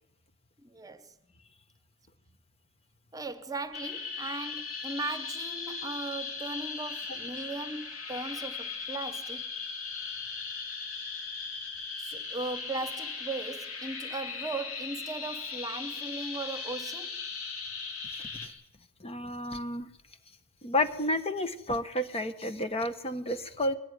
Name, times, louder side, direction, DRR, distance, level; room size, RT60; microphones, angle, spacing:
voice 1, 0.6-1.1 3.1-9.4 12.0-17.2, right 2 dB, 15° right, 1.1 m, -38 dB
sound 1, 3.7-18.5, left 5 dB, 85° left, 3.7 m, -38 dB
voice 2, 19.0-19.9 20.6-23.7, left 1 dB, 30° left, 1.3 m, -31 dB
21.5 x 16.5 x 9.6 m
head